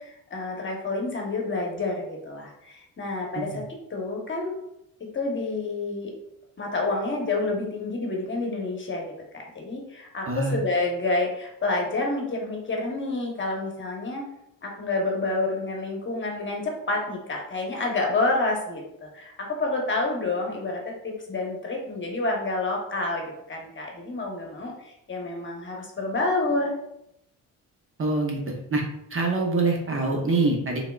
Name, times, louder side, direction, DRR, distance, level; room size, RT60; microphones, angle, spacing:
voice 1, 0.0-3.6 3.9-4.6 5.1-6.1 6.6-14.2 14.6-26.8, left 2 dB, 35° left, 0 dB, 1.0 m, -29 dB
voice 2, 10.3-10.6 28.0-28.4 28.7-28.8 29.1-30.8, right 3 dB, 35° right, 1 dB, 0.9 m, -24 dB
3.5 x 3.4 x 2.4 m, 0.80 s
cardioid pair, 75°, 35 cm